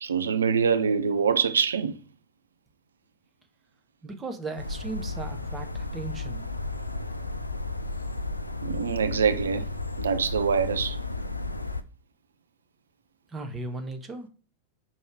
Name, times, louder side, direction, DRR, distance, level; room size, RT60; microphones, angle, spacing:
voice 1, 0.0-2.0 8.6-9.7 10.0-11.0, right 6 dB, 70° right, 0.5 m, -24 dB
voice 2, 4.0-6.4 13.3-14.3, right 3 dB, 20° right, 1.1 m, -36 dB
sound 1, 4.6-11.8, left 2 dB, 85° left, 0.4 m, -33 dB
5.4 x 4.6 x 4.7 m
figure-of-eight pair, 90°, 0 cm